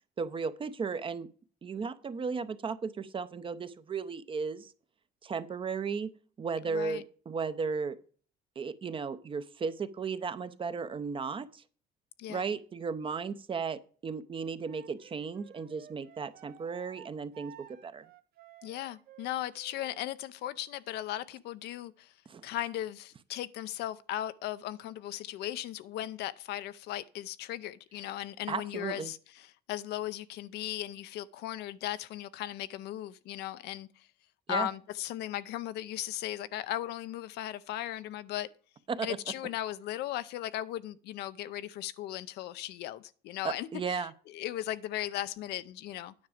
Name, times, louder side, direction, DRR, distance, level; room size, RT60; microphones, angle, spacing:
voice 1, 0.2-1.3 1.6-4.7 5.2-6.1 6.4-8.0 8.6-11.6 12.3-18.1 22.3-22.4 28.5-29.1 34.5-34.7 38.9-39.2 43.4-44.1, right 5 dB, 30° right, 0.6 m, -35 dB
voice 2, 6.7-7.0 12.2-12.4 18.6-22.1 22.4-34.1 34.5-38.5 39.0-44.1 44.3-46.1, left 13 dB, 80° left, 0.6 m, -37 dB
Wind instrument woodwind instrument, 14.6-20.1, right 11 dB, 65° right, 0.7 m, -54 dB
9.6 x 5.9 x 5.0 m
cardioid pair, 110°, 17 cm